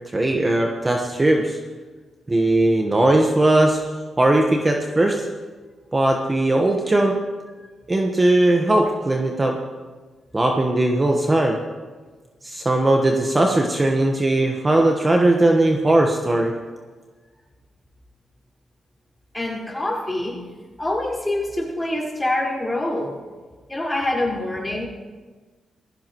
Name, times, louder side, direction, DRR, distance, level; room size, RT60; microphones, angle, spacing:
voice 1, 0.1-1.6 2.3-3.8 4.2-5.3 5.9-7.2 7.9-9.6 10.3-11.6 12.4-16.5, right 1 dB, 25° right, 2 dB, 1.3 m, -19 dB
voice 2, 19.3-20.4 20.8-23.2 23.7-24.9, left 1 dB, 15° left, -4 dB, 4.8 m, -25 dB
20.0 x 15.5 x 3.1 m, 1.4 s
cardioid pair, 70°, 0 cm